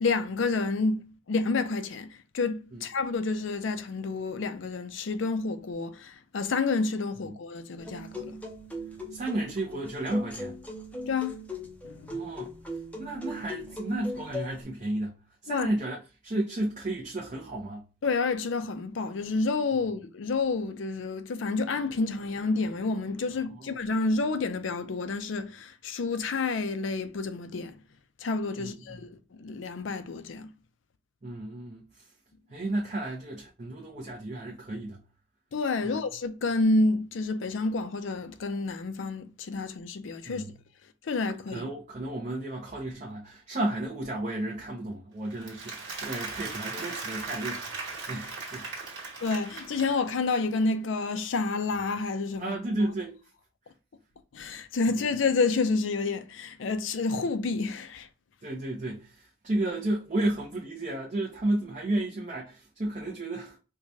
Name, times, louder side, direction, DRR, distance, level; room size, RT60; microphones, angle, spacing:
voice 1, 0.0-8.4 11.1-11.4 11.8-12.1 15.5-15.7 18.0-27.8 28.2-30.5 35.5-40.4 41.0-41.7 49.2-52.6 54.3-58.1, left 3 dB, 75° left, 0.5 m, -29 dB
sound 1, 7.8-14.6, left 1 dB, 10° left, 0.5 m, -39 dB
voice 2, 9.1-10.6 12.1-12.5 13.0-17.8 23.6-23.7 28.6-29.0 31.2-32.1 32.5-35.0 35.8-36.0 40.3-40.5 41.5-48.7 52.4-53.2 58.4-63.6, right 1 dB, 40° right, 0.7 m, -33 dB
Applause, 45.3-50.3, right 4 dB, 65° right, 1.5 m, -38 dB
4.6 x 2.2 x 2.7 m
head